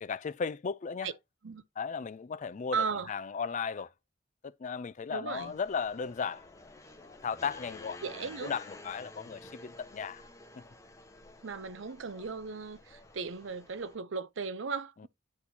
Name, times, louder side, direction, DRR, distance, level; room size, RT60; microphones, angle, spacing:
voice 1, 0.0-1.1 1.8-3.9 4.4-6.4 7.0-8.0 8.4-10.2 10.6-10.7, left 6 dB, 40° left, 0.4 m, -36 dB
voice 2, 2.7-3.1 5.1-5.5 8.0-8.5 11.4-15.1, right 5 dB, 75° right, 0.6 m, -36 dB
sound 1, 5.3-14.0, left 2 dB, 15° left, 1.2 m, -51 dB
9.7 x 4.3 x 2.8 m
head